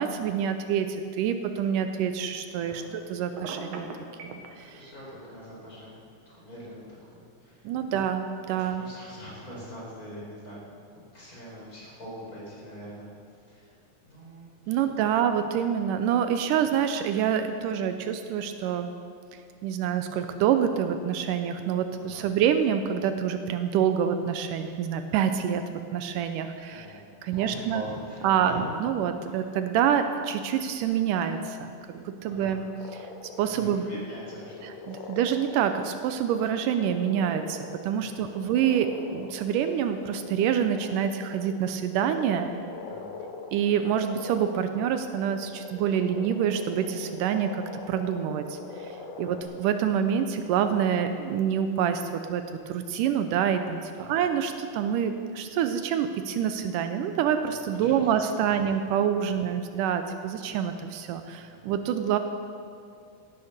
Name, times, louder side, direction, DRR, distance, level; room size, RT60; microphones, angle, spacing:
voice 1, 0.0-2.8 3.1-3.9 4.2-4.7 7.7-8.8 14.7-18.9 19.6-25.6 25.9-26.9 27.2-27.8 28.2-28.5 28.8-32.7 33.4-33.8 34.9-42.5 43.5-52.0 52.3-62.2, right 8 dB, 80° right, 8 dB, 2.2 m, -27 dB
voice 2, 2.6-2.9 4.5-6.0 6.3-7.8 8.4-13.1 13.5-13.7 14.0-14.8 15.3-15.4 22.0-22.3 26.7-27.0 27.3-28.6 29.2-29.4 32.2-32.6 33.5-35.1 37.9-38.4 42.8-43.2 49.1-49.4 53.9-54.3 57.4-58.0 58.5-58.6 59.3-59.5 61.3-61.6, equal, 25° left, -6 dB, 4.8 m, -44 dB
Telephone, 3.4-4.5, right 4 dB, 65° right, 2.2 m, -37 dB
sound 1, 32.8-33.4 34.0-37.9 38.2-49.4, left 4 dB, 65° left, 2.1 m, -42 dB
17.0 x 8.6 x 6.6 m, 2.3 s
omnidirectional pair, 3.8 m